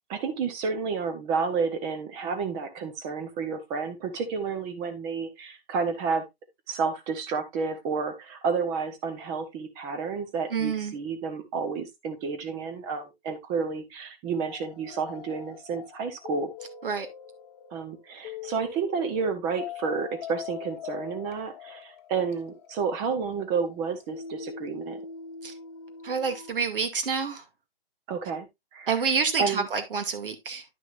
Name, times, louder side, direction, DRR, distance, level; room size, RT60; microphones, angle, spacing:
voice 1, 0.1-6.2 6.7-16.5 17.7-25.0 28.1-28.5 28.7-29.1 29.4-29.7, right 5 dB, 10° right, 0.7 m, -30 dB
voice 2, 10.5-11.0 16.8-17.1 25.4-25.5 26.0-27.4 28.9-30.6, right 5 dB, 60° right, 2.2 m, -28 dB
sound 1, 14.5-26.5, left 7 dB, 25° left, 1.2 m, -42 dB
11.0 x 6.2 x 2.4 m
hypercardioid pair, 165°, 30 cm